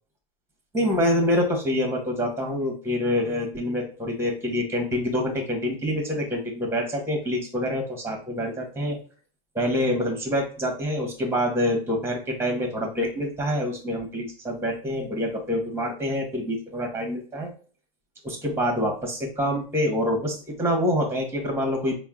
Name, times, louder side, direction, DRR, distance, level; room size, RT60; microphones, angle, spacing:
voice 1, 0.7-9.0 9.5-17.5 18.2-21.9, left 1 dB, 10° right, 2 dB, 1.3 m, -26 dB
4.2 x 2.3 x 3.7 m, 0.40 s
hypercardioid pair, 115°, 30 cm